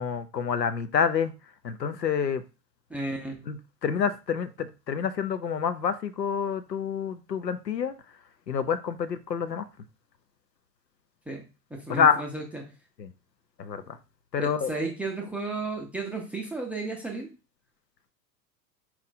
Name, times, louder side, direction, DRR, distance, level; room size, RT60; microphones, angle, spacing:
voice 1, 0.0-1.3 1.6-2.4 3.5-7.9 8.5-9.7 11.9-12.2 13.0-13.1 13.6-14.0 14.3-14.7, left 7 dB, 90° left, 0.5 m, -27 dB
voice 2, 2.9-3.4 11.3-11.4 11.7-12.6 14.4-17.3, right 3 dB, 5° right, 0.4 m, -33 dB
4.3 x 2.4 x 4.0 m
figure-of-eight pair, 85°, 48 cm